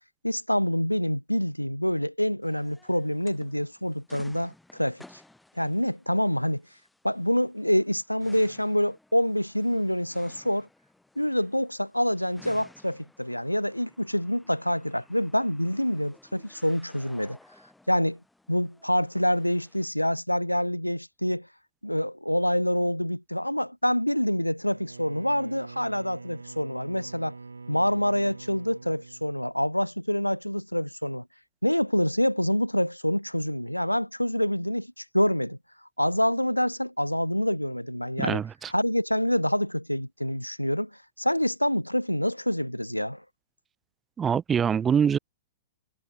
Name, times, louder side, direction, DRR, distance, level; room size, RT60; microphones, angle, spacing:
voice 1, 0.2-5.0 5.6-6.6 7.0-10.7 11.2-17.4 17.9-18.2 18.5-21.5 21.8-27.4 27.7-31.2 31.6-35.6 36.0-38.4 38.7-40.9 41.2-43.2, equal, 90° left, 0.4 m, -26 dB
sound 1, 2.4-19.9, left 2 dB, 5° left, 4.0 m, -56 dB
Bowed string instrument, 24.6-29.9, right 4 dB, 75° right, 1.7 m, -45 dB
voice 2, 38.2-38.7 44.2-45.2, right 7 dB, 15° right, 0.5 m, -24 dB
figure-of-eight pair, 105°, 0 cm